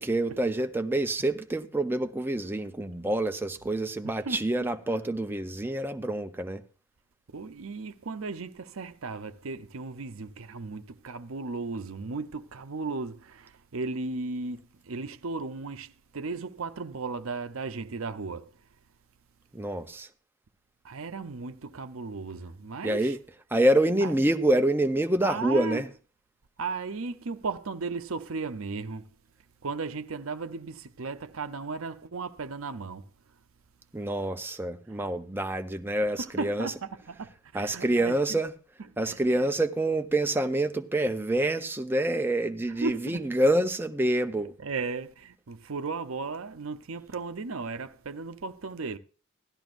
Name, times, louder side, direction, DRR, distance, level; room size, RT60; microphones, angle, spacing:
voice 1, 0.0-6.6 19.5-20.1 22.8-23.2 23.5-25.9 33.9-36.7 37.5-38.5 39.0-44.5, right 1 dB, 10° right, 0.6 m, -27 dB
voice 2, 4.0-4.5 7.3-18.5 20.8-23.2 24.0-24.1 25.2-25.8 26.6-29.0 29.6-33.1 34.9-35.0 36.2-38.4 39.0-39.5 42.8-43.3 44.4-49.0, right 4 dB, 80° right, 0.7 m, -36 dB
16.5 x 12.5 x 2.5 m
head